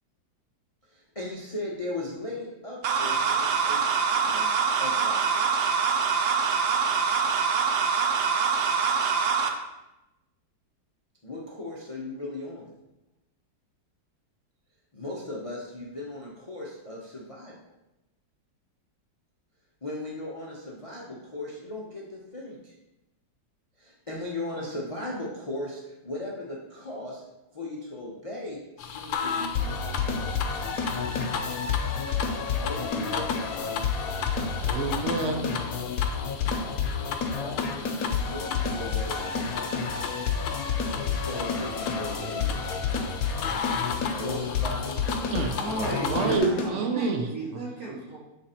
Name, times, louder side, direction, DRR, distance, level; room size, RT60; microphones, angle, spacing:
voice 1, 0.9-4.5 4.8-5.5 7.0-7.6 11.2-12.7 14.9-17.7 19.8-22.7 23.8-27.2 27.5-30.1 32.5-33.3 37.3-39.5 41.0-42.6 44.1-45.0, left 1 dB, 45° left, -4 dB, 0.4 m, -37 dB
sound 1, 2.8-9.5, right 6 dB, 70° right, 1.1 m, -24 dB
sound 2, 28.8-46.4, left 6 dB, 80° left, 1.3 m, -36 dB
sound 3, 29.5-46.7, left 5 dB, 60° left, 1.0 m, -30 dB
voice 2, 34.6-35.6 45.2-47.2, right 4 dB, 90° right, 3 dB, 0.6 m, -28 dB
voice 3, 45.6-48.2, right 2 dB, 50° right, -6 dB, 2.4 m, -34 dB
7.1 x 3.5 x 4.3 m, 0.95 s
omnidirectional pair, 2.1 m